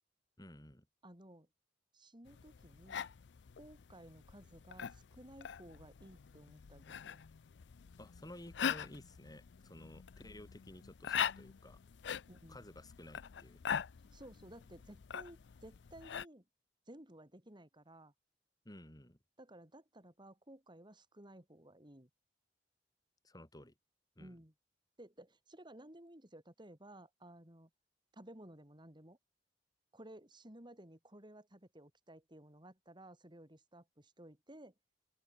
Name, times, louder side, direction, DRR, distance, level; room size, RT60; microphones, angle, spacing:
voice 1, 0.4-0.8 8.0-11.8 12.5-13.6 18.6-19.2 23.2-23.7 24.2-24.3, left 1 dB, 20° left, 4.3 m, -54 dB
voice 2, 1.0-1.5 1.9-3.1 3.6-7.2 12.2-12.6 14.1-16.5 16.9-18.1 19.4-22.1 24.2-24.5 25.0-27.7 28.1-29.2 29.9-34.7, right 1 dB, 25° right, 5.2 m, -56 dB
sound 1, 2.3-16.3, left 8 dB, 75° left, 0.5 m, -43 dB
open air
head